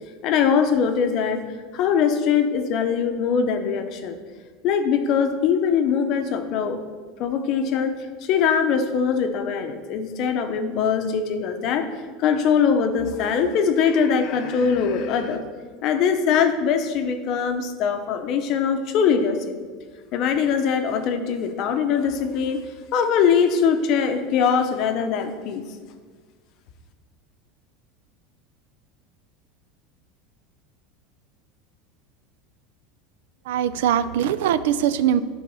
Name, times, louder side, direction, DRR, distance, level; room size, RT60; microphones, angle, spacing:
voice 1, 0.2-1.4 1.7-4.2 4.6-6.8 7.2-7.9 8.2-11.9 12.2-15.4 15.8-19.5 20.1-22.6 22.9-25.6, left 6 dB, 40° left, 7 dB, 0.7 m, -22 dB
voice 2, 33.5-35.2, right 10 dB, 85° right, 14 dB, 0.4 m, -21 dB
11.5 x 4.0 x 5.5 m, 1.5 s
supercardioid pair, 175°, 0 cm